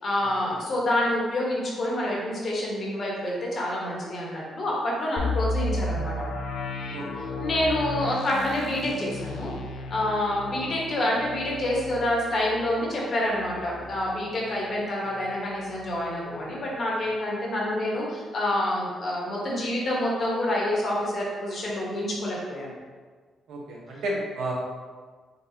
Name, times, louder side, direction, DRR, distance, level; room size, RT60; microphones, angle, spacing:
voice 1, 0.0-6.1 7.2-9.5 9.9-22.7, left 1 dB, 40° left, -4 dB, 1.1 m, -27 dB
sound 1, 5.2-14.9 15.2-15.3 15.8-16.1, left 2 dB, 70° left, 0.4 m, -34 dB
voice 2, 6.9-7.3 23.5-24.5, right 1 dB, 75° right, -3 dB, 0.9 m, -32 dB
4.0 x 3.8 x 2.8 m, 1.5 s
cardioid pair, 155°, 0 cm